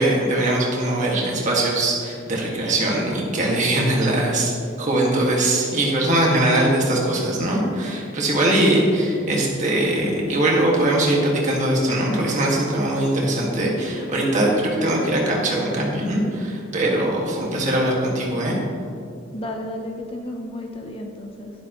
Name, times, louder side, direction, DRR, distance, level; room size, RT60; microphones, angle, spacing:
voice 1, 0.0-4.5 4.8-18.6, right 1 dB, 35° right, -3 dB, 2.0 m, -21 dB
voice 2, 19.3-21.5, left 1 dB, 30° left, 2 dB, 0.7 m, -32 dB
11.5 x 11.0 x 3.1 m, 2.4 s
head